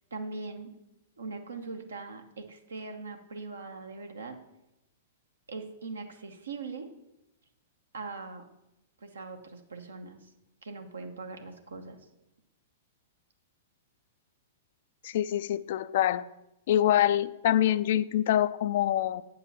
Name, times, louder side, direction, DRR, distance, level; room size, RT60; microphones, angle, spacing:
voice 1, 0.1-0.7 1.2-4.4 5.5-6.9 7.9-8.4 9.0-10.3 10.6-12.0, right 3 dB, 80° right, 5 dB, 1.1 m, -41 dB
voice 2, 15.0-16.2 16.7-19.2, left 11 dB, 60° left, 15 dB, 0.3 m, -25 dB
8.6 x 5.4 x 5.6 m, 0.90 s
hypercardioid pair, 105°, 0 cm